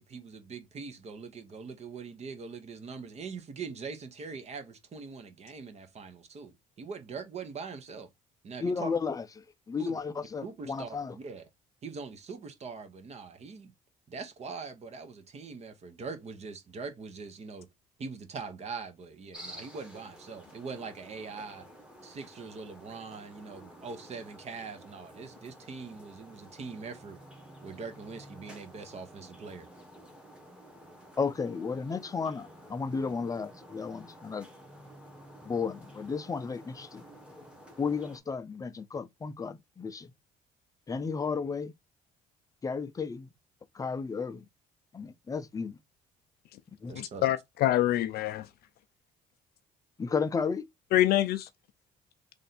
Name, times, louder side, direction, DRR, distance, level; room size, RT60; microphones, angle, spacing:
voice 1, 0.0-8.1 8.4-8.9 9.8-10.0 10.4-11.4 11.8-13.7 14.1-17.7 18.0-21.7 22.0-27.2 27.6-29.7 46.9-47.2, right 5 dB, 40° right, 1.0 m, -42 dB
voice 2, 8.6-9.3 9.7-11.1 31.2-34.5 35.4-37.0 37.8-40.1 40.9-41.7 42.6-43.3 43.7-44.4 44.9-45.8 46.8-47.1 50.0-50.6, left 5 dB, 20° left, 0.5 m, -33 dB
sound 1, 19.3-38.2, equal, 5° right, 1.4 m, -51 dB
voice 3, 46.9-48.5 50.9-51.5, left 13 dB, 70° left, 0.4 m, -26 dB
3.3 x 2.5 x 4.2 m
cardioid pair, 110°, 17 cm